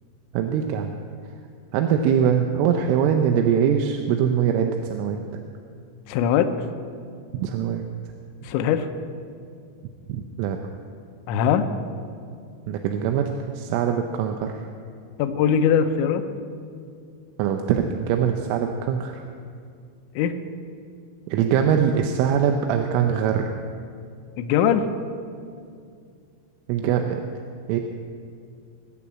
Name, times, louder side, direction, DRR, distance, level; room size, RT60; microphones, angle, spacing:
voice 1, 0.3-1.0 1.7-5.2 7.3-7.8 10.1-10.6 12.7-14.7 17.4-19.2 21.3-23.5 26.7-27.2 27.7-27.8, right 8 dB, 85° right, 4 dB, 3.3 m, -22 dB
voice 2, 6.1-6.5 8.4-8.9 11.3-11.7 15.2-16.2 20.2-20.4 24.4-24.9, left 8 dB, 80° left, 8 dB, 3.0 m, -21 dB
21.0 x 7.0 x 8.7 m, 2.3 s
omnidirectional pair, 5.6 m